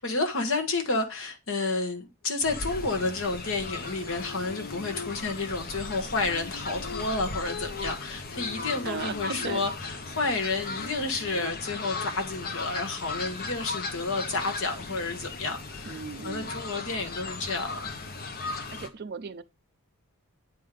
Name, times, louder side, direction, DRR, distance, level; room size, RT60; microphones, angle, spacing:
voice 1, 0.0-18.0, left 3 dB, 65° left, 1.4 m, -30 dB
Fowl, 2.4-18.9, left 3 dB, 45° left, 0.9 m, -37 dB
sound 1, 4.0-5.5 6.0-10.0 10.5-12.1, left 5 dB, 80° left, 0.5 m, -43 dB
voice 2, 8.8-9.6 15.9-16.5 18.4-19.4, right 5 dB, 50° right, 0.5 m, -37 dB
8.4 x 3.7 x 4.9 m
head